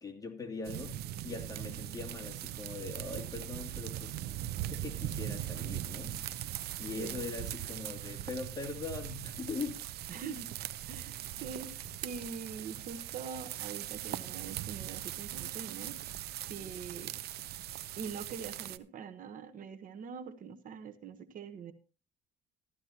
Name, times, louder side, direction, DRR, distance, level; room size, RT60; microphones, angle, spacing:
voice 1, 0.0-4.2 4.7-6.2 6.8-9.8, left 4 dB, 20° left, 2.6 m, -41 dB
sound 1, 0.6-18.8, right 13 dB, 70° right, 0.7 m, -40 dB
voice 2, 10.1-10.5 10.9-16.0 16.5-17.1 18.0-21.7, right 6 dB, 55° right, 1.1 m, -44 dB
14.5 x 12.5 x 2.9 m
cardioid pair, 110°, 17 cm